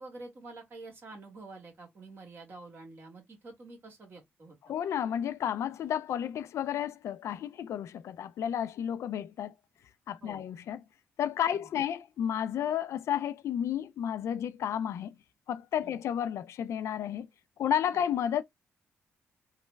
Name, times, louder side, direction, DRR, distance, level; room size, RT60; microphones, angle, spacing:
voice 1, 0.0-4.7 10.2-10.4 11.5-11.7 15.8-16.0 17.9-18.0, right 3 dB, 45° right, 1.6 m, -48 dB
voice 2, 4.7-9.5 10.1-10.8 11.2-15.2 15.5-17.3 17.6-18.4, left 9 dB, 70° left, 0.3 m, -32 dB
3.1 x 2.1 x 3.4 m
cardioid pair, 105°, 5 cm